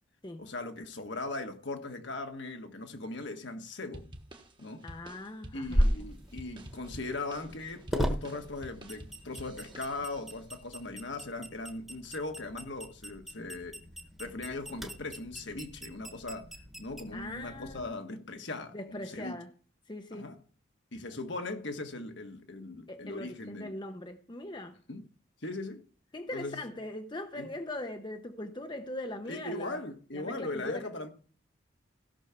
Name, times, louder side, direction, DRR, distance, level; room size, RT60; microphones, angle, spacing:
voice 1, 0.4-4.1 4.6-4.8 5.5-13.8 14.2-16.5 16.8-19.4 20.1-20.4 20.9-23.8 24.9-25.0 25.4-25.8 26.3-26.6 27.3-27.5 29.3-31.1, left 2 dB, 65° left, 1.5 m, -39 dB
sound 1, 3.9-10.4, right 1 dB, 25° right, 1.3 m, -50 dB
voice 2, 4.8-5.9 17.1-17.9 18.7-19.5 19.9-20.3 22.9-24.8 26.1-29.8 30.1-30.9, left 1 dB, 25° left, 0.8 m, -40 dB
sound 2, 5.7-17.9, equal, ahead, 1.2 m, -37 dB
16.0 x 6.3 x 5.8 m
head